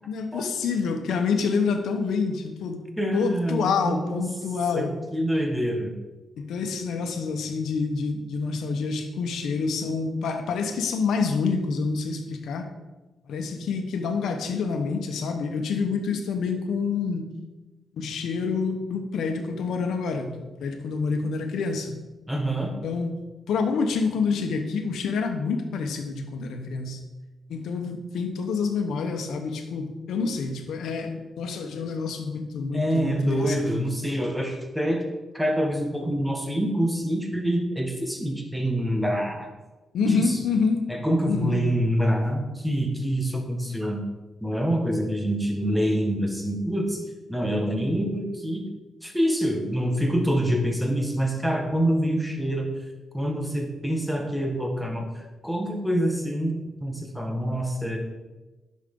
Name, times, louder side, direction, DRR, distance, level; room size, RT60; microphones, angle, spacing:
voice 1, 0.0-2.8 3.1-5.0 6.4-12.7 13.3-17.3 17.9-22.0 22.8-23.1 23.5-27.0 27.5-33.9 39.9-40.8 41.3-41.6, left 5 dB, 85° left, 6 dB, 1.1 m, -27 dB
voice 2, 3.0-4.2 4.7-4.9 5.1-5.9 22.3-22.8 32.7-35.0 35.3-39.5 40.0-40.4 40.9-44.0 44.4-47.0 47.3-48.6 49.0-52.7 53.1-55.1 55.4-58.0, equal, 5° right, 2 dB, 1.6 m, -26 dB
10.5 x 6.5 x 3.8 m, 1.2 s
cardioid pair, 95°, 0 cm